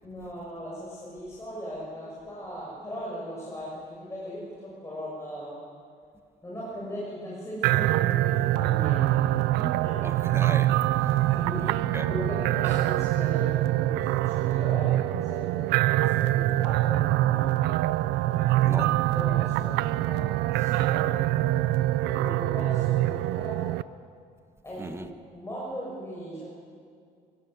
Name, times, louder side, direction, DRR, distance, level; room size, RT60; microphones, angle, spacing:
voice 1, 0.0-5.6 6.4-10.1 11.3-15.7 16.0-17.5 18.3-21.5 22.0-23.8 24.6-25.0 25.3-26.4, equal, 15° left, 6.7 m, -38 dB
sound 1, 7.6-23.8, right 15 dB, 90° right, 0.5 m, -24 dB
voice 2, 10.0-11.3 11.7-12.1 18.6-19.0 24.8-25.1, right 2 dB, 15° right, 1.4 m, -37 dB
24.5 x 16.0 x 8.2 m
cardioid pair, 110°, 17 cm